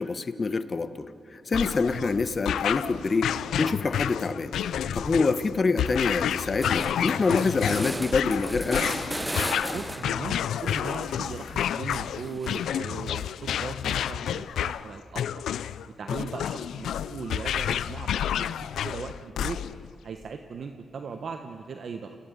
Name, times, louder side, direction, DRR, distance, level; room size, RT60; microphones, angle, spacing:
voice 1, 0.0-8.9, left 4 dB, 45° left, 11 dB, 1.3 m, -26 dB
sound 1, 1.5-19.9, left 10 dB, 85° left, 0.5 m, -30 dB
sound 2, 4.7-5.1 5.5-5.6 5.9-10.3 10.7-12.8, right 1 dB, 10° right, 0.9 m, -36 dB
voice 2, 9.7-15.2 16.0-18.5 18.8-19.6 20.0-22.2, right 5 dB, 65° right, 6 dB, 1.2 m, -38 dB
28.5 x 17.0 x 8.6 m, 2.5 s
cardioid pair, 55°, 0 cm